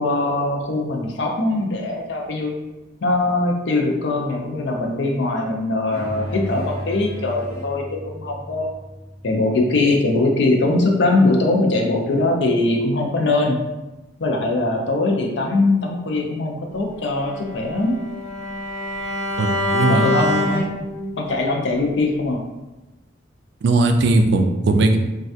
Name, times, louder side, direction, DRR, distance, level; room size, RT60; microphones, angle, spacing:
voice 1, 0.0-2.5 3.0-8.7 9.2-13.6 14.2-18.0 19.9-20.6 21.2-22.4 23.7-23.8, left 2 dB, 70° left, 1 dB, 0.5 m, -21 dB
sound 1, 5.9-10.6, equal, 20° left, 1.2 m, -34 dB
Bowed string instrument, 17.1-21.3, left 1 dB, 5° right, 1.4 m, -25 dB
voice 2, 19.4-20.1 23.6-25.0, right 2 dB, 65° right, 6 dB, 0.3 m, -18 dB
3.2 x 2.3 x 2.7 m, 1.0 s
head